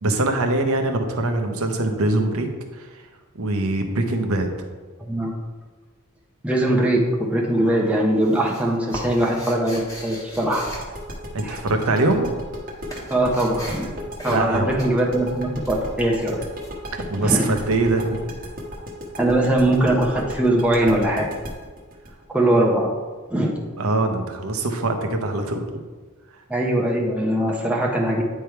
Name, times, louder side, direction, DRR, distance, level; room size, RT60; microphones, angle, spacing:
voice 1, 0.0-3.0 3.3-4.5 11.3-12.3 14.3-14.7 16.9-18.2 23.8-25.7, right 2 dB, 70° right, 5 dB, 0.9 m, -23 dB
voice 2, 6.4-10.6 11.4-11.6 13.1-13.9 14.2-16.4 17.2-17.6 19.2-21.3 22.3-22.9 23.3-23.5 26.5-28.2, right 1 dB, 5° right, -2 dB, 0.8 m, -21 dB
sound 1, 7.0-7.5 7.8-11.8 12.1-17.7, equal, 15° left, 1.3 m, -39 dB
sound 2, 10.5-23.3, equal, 40° right, 1.2 m, -35 dB
9.3 x 3.4 x 4.5 m, 1.4 s
head